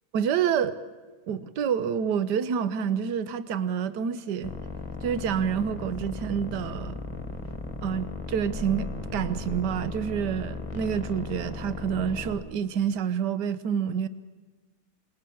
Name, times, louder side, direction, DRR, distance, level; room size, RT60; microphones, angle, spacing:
voice 1, 0.1-0.8 1.3-4.5 5.0-7.0 7.8-14.1, right 8 dB, 75° right, 14 dB, 1.5 m, -28 dB
sound 1, 4.4-12.3, left 3 dB, 20° left, 1.7 m, -36 dB
27.5 x 21.0 x 7.0 m, 1.3 s
omnidirectional pair, 1.8 m